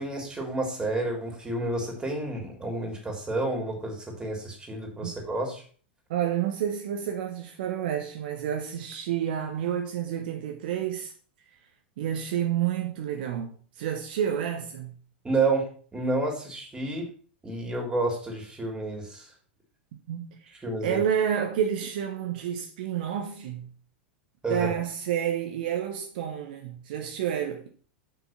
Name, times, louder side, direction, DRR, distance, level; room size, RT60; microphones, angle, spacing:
voice 1, 0.0-5.6 15.2-17.1 17.4-19.3 20.6-21.0 24.4-24.7, right 2 dB, 15° right, 3.5 m, -30 dB
voice 2, 6.1-11.1 12.0-15.0 20.1-23.7 24.5-27.7, right 9 dB, 60° right, 1.1 m, -29 dB
6.8 x 6.1 x 5.9 m
figure-of-eight pair, 95°, 6 cm